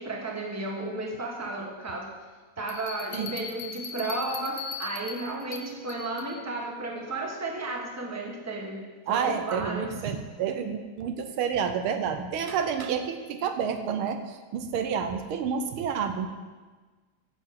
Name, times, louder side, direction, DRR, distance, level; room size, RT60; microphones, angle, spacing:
voice 1, 0.0-2.1 2.6-9.9, right 2 dB, 10° right, -1 dB, 1.3 m, -33 dB
sound 1, 2.7-6.4, left 6 dB, 50° left, 1.1 m, -39 dB
voice 2, 9.1-16.3, right 7 dB, 75° right, 8 dB, 1.6 m, -29 dB
10.0 x 6.6 x 7.8 m, 1.3 s
omnidirectional pair, 2.4 m